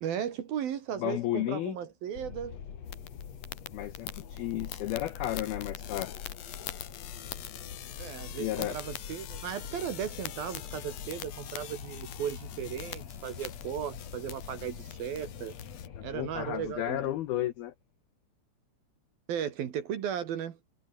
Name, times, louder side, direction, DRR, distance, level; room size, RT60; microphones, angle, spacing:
voice 1, 0.0-2.6 8.0-15.6 16.0-17.1 19.3-20.6, right 9 dB, 60° right, 3.0 m, -36 dB
voice 2, 1.0-1.8 3.7-6.2 8.4-8.7 16.0-17.7, left 14 dB, 80° left, 2.2 m, -33 dB
Wind, 2.1-17.5, left 7 dB, 45° left, 2.6 m, -44 dB
sound 1, 2.9-15.9, left 12 dB, 60° left, 2.6 m, -45 dB
omnidirectional pair, 5.7 m